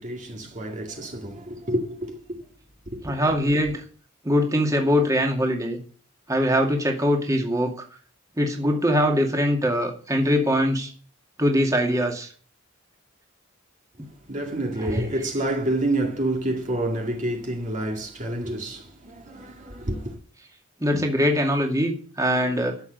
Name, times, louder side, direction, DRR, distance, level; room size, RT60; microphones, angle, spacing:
voice 1, 0.0-2.4 2.9-3.1 14.3-20.2, right 1 dB, 35° right, 2.1 m, -28 dB
voice 2, 3.0-3.8 4.2-5.8 6.3-7.7 8.4-10.9 11.4-12.3 14.8-15.1 20.8-22.8, equal, 15° right, 2.3 m, -22 dB
13.0 x 7.4 x 8.1 m
head